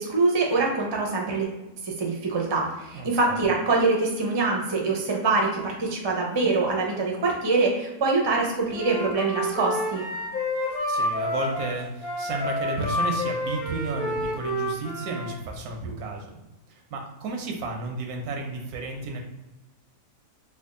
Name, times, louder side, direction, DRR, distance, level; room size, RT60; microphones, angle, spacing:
voice 1, 0.0-1.5 1.8-10.0, right 3 dB, 35° right, -1 dB, 0.4 m, -24 dB
voice 2, 2.9-3.4 10.9-16.4 16.9-19.2, right 3 dB, 85° right, 2 dB, 1.2 m, -32 dB
Wind instrument woodwind instrument, 8.7-15.3, left 1 dB, 75° left, 1.4 m, -29 dB
3.4 x 2.3 x 3.6 m, 1.0 s
omnidirectional pair, 1.5 m